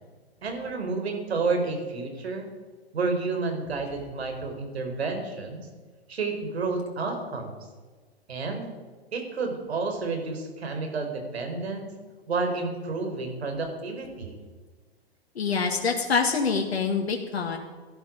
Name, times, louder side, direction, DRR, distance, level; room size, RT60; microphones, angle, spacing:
voice 1, 0.4-2.5 2.9-5.7 6.1-7.6 8.3-8.7 9.1-11.9 12.3-14.4, right 4 dB, 80° right, 4 dB, 4.4 m, -30 dB
voice 2, 15.4-17.6, left 5 dB, 80° left, 2 dB, 2.0 m, -25 dB
17.5 x 12.5 x 5.2 m, 1.4 s
hypercardioid pair, 120°, 31 cm